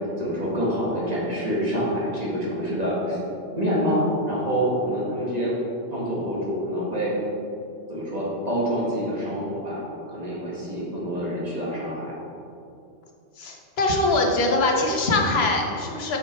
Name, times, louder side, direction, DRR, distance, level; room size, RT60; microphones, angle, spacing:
voice 1, 0.2-3.2 3.6-5.6 5.9-7.2 7.9-9.8 10.1-12.1, equal, 35° right, -6 dB, 1.7 m, -26 dB
voice 2, 13.4-16.2, left 2 dB, 60° left, 1 dB, 1.1 m, -22 dB
6.4 x 5.8 x 4.4 m, 2.6 s
omnidirectional pair, 1.2 m